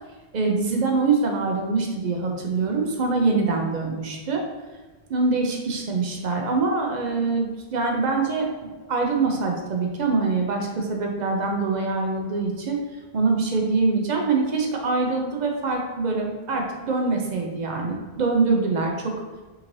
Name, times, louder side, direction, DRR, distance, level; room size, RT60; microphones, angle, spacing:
voice 1, 0.3-4.4 5.1-12.8 13.1-19.1, right 3 dB, 55° right, 1 dB, 0.6 m, -24 dB
3.7 x 3.0 x 2.6 m, 1.2 s
omnidirectional pair, 1.0 m